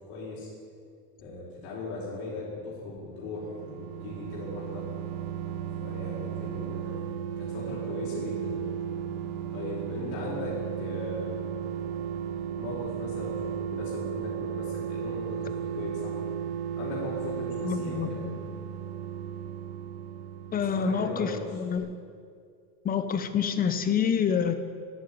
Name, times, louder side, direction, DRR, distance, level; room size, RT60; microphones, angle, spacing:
voice 1, 0.1-0.5 1.2-4.9 5.8-7.0 7.4-8.7 9.5-11.5 12.6-16.2 16.7-18.2 20.6-21.6, left 2 dB, 75° left, -7 dB, 4.4 m, -38 dB
sound 1, 3.2-21.5 21.8-21.9, right 9 dB, 65° right, 1.0 m, -35 dB
voice 2, 17.6-18.1 20.5-21.9 22.8-24.5, left 7 dB, 20° left, 10 dB, 0.7 m, -27 dB
11.5 x 9.4 x 9.0 m, 2.3 s
cardioid pair, 160°, 43 cm